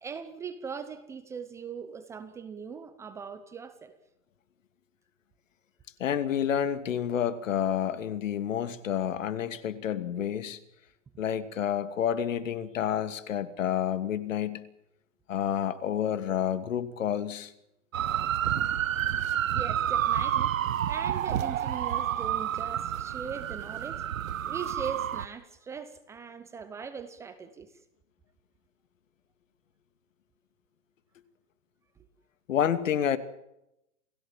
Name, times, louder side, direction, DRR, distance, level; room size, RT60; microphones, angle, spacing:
voice 1, 0.0-3.9 10.2-10.3 19.5-20.5 20.9-24.0 24.4-27.7, right 6 dB, 5° right, 10 dB, 0.8 m, -40 dB
voice 2, 6.0-10.6 11.2-14.6 15.3-17.5 32.5-33.2, left 9 dB, 70° left, 13 dB, 2.5 m, -29 dB
sound 1, 17.9-25.3, right 10 dB, 80° right, 1.5 m, -29 dB
29.0 x 16.5 x 7.5 m, 0.85 s
hypercardioid pair, 165°, 40 cm